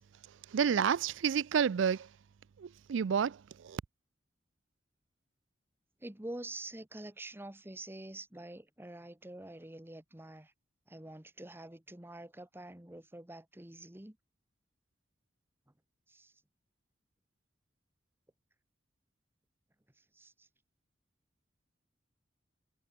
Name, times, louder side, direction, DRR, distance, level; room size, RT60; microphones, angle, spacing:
voice 1, 0.5-2.1 2.6-3.8, right 7 dB, 90° right, 0.4 m, -30 dB
voice 2, 6.0-10.5 10.9-14.2 16.1-16.3 20.1-20.5, right 1 dB, 10° right, 1.1 m, -47 dB
head